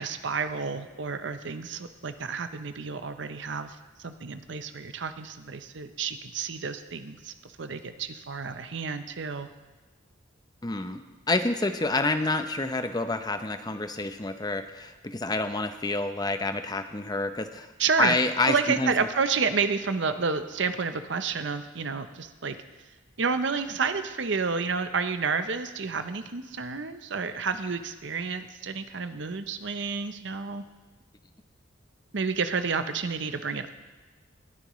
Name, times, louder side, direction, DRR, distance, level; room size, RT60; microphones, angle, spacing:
voice 1, 0.0-3.8 4.0-9.5 17.8-18.1 18.5-22.6 23.2-30.6 32.1-33.7, right 5 dB, 60° right, 9 dB, 0.7 m, -30 dB
voice 2, 10.6-11.0 11.3-17.7 18.0-18.9, left 2 dB, 20° left, 8 dB, 0.7 m, -28 dB
20.5 x 10.5 x 3.1 m, 1.2 s
head